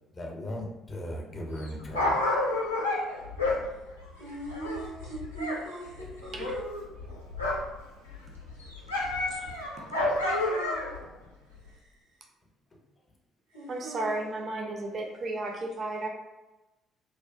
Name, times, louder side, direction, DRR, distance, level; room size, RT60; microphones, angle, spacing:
voice 1, 0.1-2.2 9.3-9.4 12.7-12.8, left 1 dB, 35° left, 1 dB, 0.5 m, -37 dB
Dog, 1.5-5.6 5.9-7.8 8.1-11.0 11.7-11.8, left 2 dB, 90° left, 0.3 m, -30 dB
voice 2, 4.1-6.7 11.5-12.3 13.5-14.2, right 2 dB, 85° right, -6 dB, 0.9 m, -41 dB
voice 3, 13.7-16.1, right 2 dB, 45° right, 1 dB, 0.4 m, -33 dB
2.5 x 2.1 x 2.4 m, 1.1 s
figure-of-eight pair, 50°, 0 cm